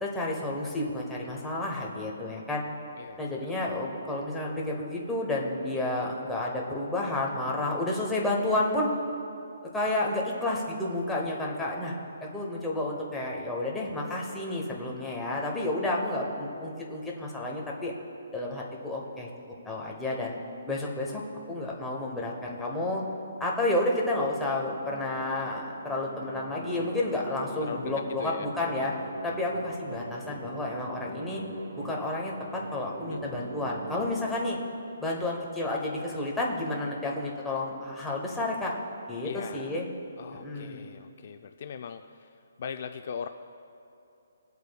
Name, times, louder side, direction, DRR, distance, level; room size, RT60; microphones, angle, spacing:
voice 1, 0.0-2.6 3.2-9.0 9.7-11.9 12.2-17.9 18.3-19.3 19.6-20.4 20.7-21.2 21.5-23.0 23.4-28.9 29.2-31.4 31.8-34.6 35.0-38.7 39.1-39.9 40.3-40.9, left 2 dB, 5° left, -3 dB, 0.9 m, -31 dB
sound 1, 24.1-34.1, right 2 dB, 65° right, 1.1 m, -42 dB
voice 2, 27.6-27.9 28.2-28.5 33.1-33.5 39.2-39.8 40.2-42.3 42.6-43.3, left 7 dB, 40° left, 7 dB, 0.3 m, -39 dB
20.0 x 8.2 x 2.3 m, 2.7 s
hypercardioid pair, 175°, 0 cm